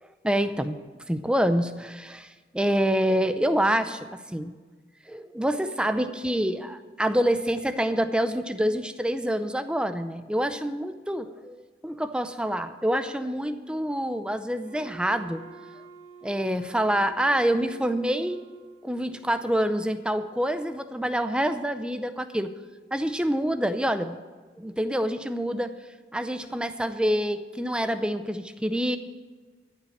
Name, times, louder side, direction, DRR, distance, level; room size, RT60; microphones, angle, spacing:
voice 1, 0.2-0.8 1.1-4.5 5.1-11.6 11.8-15.4 16.2-18.4 18.8-22.5 22.9-24.2 24.6-25.7 26.1-29.0, equal, 5° right, 10 dB, 0.5 m, -26 dB
Wind instrument woodwind instrument, 14.6-19.3, right 4 dB, 50° right, 2.0 m, -49 dB
13.5 x 5.8 x 9.0 m, 1.4 s
head